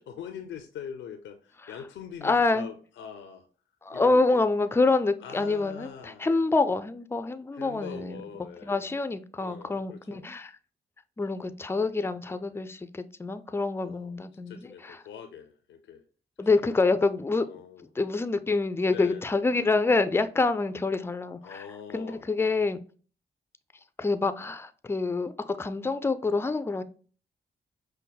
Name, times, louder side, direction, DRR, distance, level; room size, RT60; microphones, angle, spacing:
voice 1, 0.2-3.5 3.9-4.4 5.2-6.4 7.5-9.0 9.4-10.2 11.3-11.5 12.3-12.5 13.8-16.0 16.4-16.6 17.4-17.9 18.9-19.3 21.4-22.3, left 8 dB, 75° left, 0.4 m, -43 dB
voice 2, 2.2-2.7 3.8-8.2 8.6-10.5 11.2-15.0 16.4-17.5 18.0-21.7 21.9-22.8 24.0-26.8, left 3 dB, 15° left, 0.4 m, -26 dB
5.3 x 2.1 x 2.2 m
supercardioid pair, 45°, 20 cm